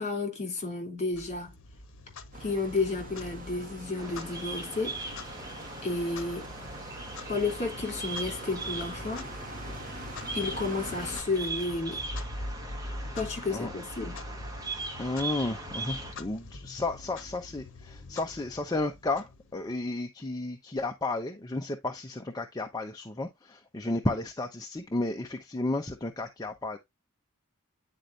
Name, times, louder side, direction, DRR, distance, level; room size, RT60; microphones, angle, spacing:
voice 1, 0.0-1.5 2.4-5.0 5.8-6.5 7.3-9.3 10.3-12.0 13.1-14.2, left 3 dB, 35° left, 2.9 m, -32 dB
Clock, 1.1-19.9, left 2 dB, 65° left, 1.0 m, -44 dB
sound 1, 2.3-11.2, right 2 dB, 40° right, 1.5 m, -44 dB
Bird vocalization bird call bird song, 4.0-16.1, right 2 dB, 15° right, 1.4 m, -40 dB
voice 2, 15.0-26.8, left 2 dB, 20° left, 0.7 m, -33 dB
9.9 x 4.3 x 2.5 m
head